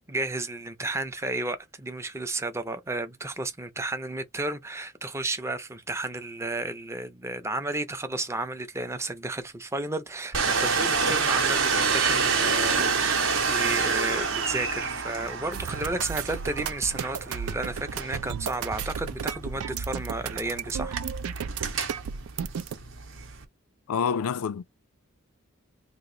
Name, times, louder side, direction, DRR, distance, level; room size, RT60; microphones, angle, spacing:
voice 1, 0.1-21.0, right 2 dB, 10° right, 0.5 m, -32 dB
Domestic sounds home sounds, 10.3-23.4, right 5 dB, 55° right, 0.8 m, -28 dB
sound 1, 15.5-22.8, right 7 dB, 80° right, 0.4 m, -34 dB
voice 2, 23.9-24.6, left 6 dB, 80° left, 0.4 m, -27 dB
3.0 x 2.4 x 3.7 m
head